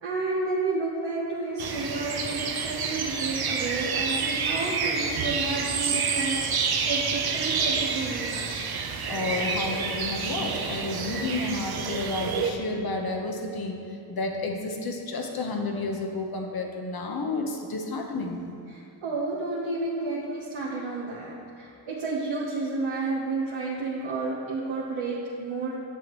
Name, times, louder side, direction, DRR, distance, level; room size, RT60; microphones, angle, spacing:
voice 1, 0.0-8.4 18.7-25.7, right 3 dB, 70° right, -5 dB, 1.2 m, -31 dB
sound 1, 1.6-12.5, right 5 dB, 50° right, 0.8 m, -28 dB
voice 2, 9.1-13.8 14.1-18.4, left 2 dB, 50° left, 2 dB, 1.2 m, -31 dB
8.2 x 7.1 x 3.1 m, 2.6 s
cardioid pair, 70°, 47 cm